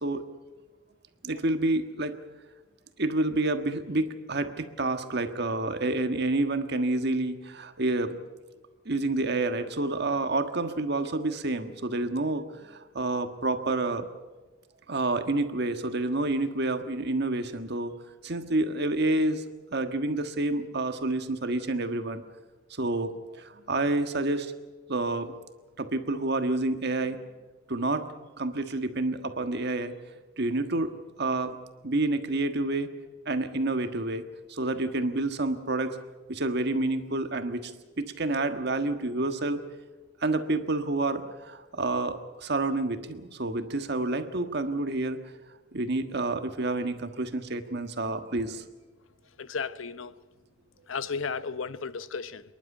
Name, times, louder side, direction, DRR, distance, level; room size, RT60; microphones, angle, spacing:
voice 1, 1.2-2.1 3.0-8.2 8.8-14.1 14.9-17.9 18.2-19.4 19.7-22.2 22.7-24.5 24.9-25.3 25.8-27.2 27.7-28.1 28.4-29.9 30.4-31.6 31.8-32.9 33.2-34.2 34.5-36.0 36.3-37.7 38.0-39.6 40.2-45.2 45.7-48.6, right 2 dB, 55° right, 1.5 m, -28 dB
voice 2, 49.4-50.1 50.9-52.4, left 5 dB, 85° left, 0.8 m, -34 dB
27.0 x 11.0 x 9.9 m
head